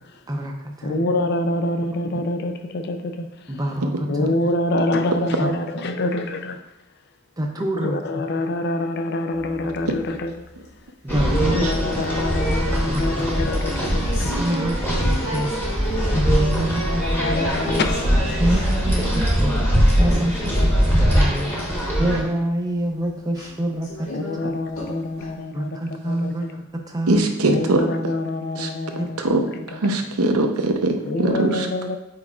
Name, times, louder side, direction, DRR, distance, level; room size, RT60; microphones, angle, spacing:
voice 1, 0.3-1.1 3.5-4.3 5.4-5.5 7.4-8.0 11.0-11.7 14.4-15.6 16.1-17.3 18.4-19.6 20.0-20.5 21.0-21.5 22.0-24.5 25.5-26.6 26.9-27.3 29.0-29.1, right 1 dB, 15° right, 0.6 m, -26 dB
voice 2, 0.8-3.5 4.1-6.6 7.8-10.5 11.3-14.3 16.8-18.4 20.0-20.3 20.6-22.1 24.1-25.8 26.1-26.5 27.5-30.0 31.0-32.0, left 2 dB, 50° left, 0.4 m, -26 dB
sound 1, 9.3-10.8 11.4-11.8 12.2-12.8 13.0-16.8 17.1-17.2 17.6-20.9 21.3-21.6 22.0-22.1 22.9-23.1 23.3-23.5 23.8-24.5 24.7-25.3, equal, 80° left, 1.6 m, -35 dB
sound 2, 11.1-22.2, equal, 10° left, 1.1 m, -21 dB
voice 3, 27.1-27.8 28.6-28.7 29.2-29.4 29.7-31.7, right 2 dB, 85° right, 0.7 m, -21 dB
8.1 x 4.8 x 2.4 m
head